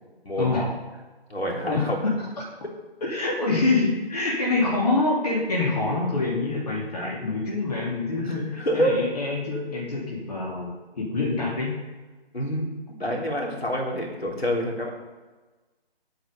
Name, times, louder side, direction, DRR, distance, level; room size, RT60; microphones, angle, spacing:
voice 1, 0.4-0.7 1.7-2.1 3.0-11.7, left 3 dB, 40° left, -4 dB, 2.7 m, -26 dB
voice 2, 1.3-2.0 8.6-9.0 12.3-12.7 13.0-14.9, equal, 70° left, -1 dB, 3.7 m, -26 dB
10.0 x 8.6 x 5.3 m, 1.3 s
figure-of-eight pair, 155°, 31 cm